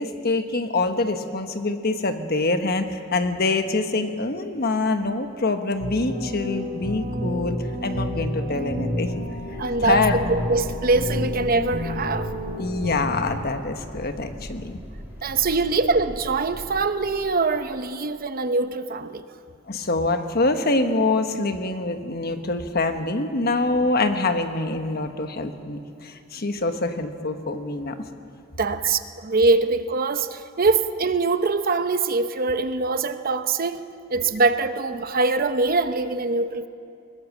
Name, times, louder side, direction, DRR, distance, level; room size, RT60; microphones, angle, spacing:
voice 1, 0.0-9.1 9.8-10.2 11.1-11.2 12.6-14.8 19.7-28.0, left 2 dB, 50° left, 7 dB, 1.3 m, -25 dB
sound 1, 5.8-13.0, left 1 dB, 80° right, 4.2 m, -30 dB
sound 2, 8.8-17.9, equal, 10° right, 2.4 m, -40 dB
voice 2, 9.6-12.3 15.2-19.2 28.6-33.8 34.1-36.7, right 3 dB, 45° right, 10 dB, 0.8 m, -23 dB
21.0 x 20.5 x 7.4 m, 2.5 s
head